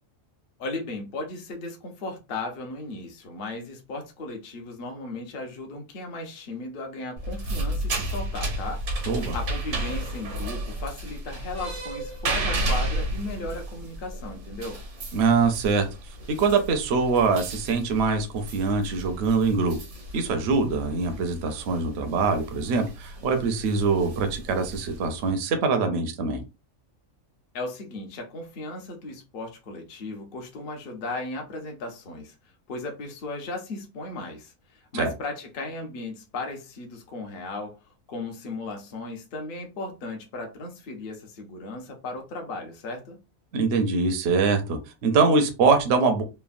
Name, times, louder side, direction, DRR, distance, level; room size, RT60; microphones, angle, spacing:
voice 1, 0.6-8.8 9.3-14.8 27.5-32.4 32.7-43.2, left 2 dB, 50° left, 0.7 m, -36 dB
sound 1, 7.2-25.3, right 1 dB, 85° right, 1.4 m, -33 dB
voice 2, 15.1-15.9 16.3-19.8 20.1-26.4 34.9-35.1 43.5-46.2, right 4 dB, 60° right, 0.7 m, -23 dB
3.2 x 2.1 x 2.4 m
omnidirectional pair, 1.4 m